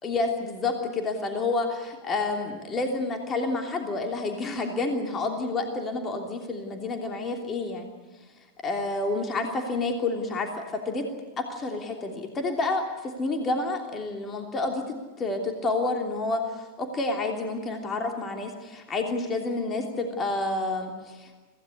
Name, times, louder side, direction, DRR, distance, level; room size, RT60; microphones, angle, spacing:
voice 1, 0.0-7.9 8.6-11.1 11.4-21.4, left 3 dB, 20° left, 3 dB, 3.1 m, -29 dB
25.5 x 17.0 x 9.7 m, 1.4 s
figure-of-eight pair, 90°, 0 cm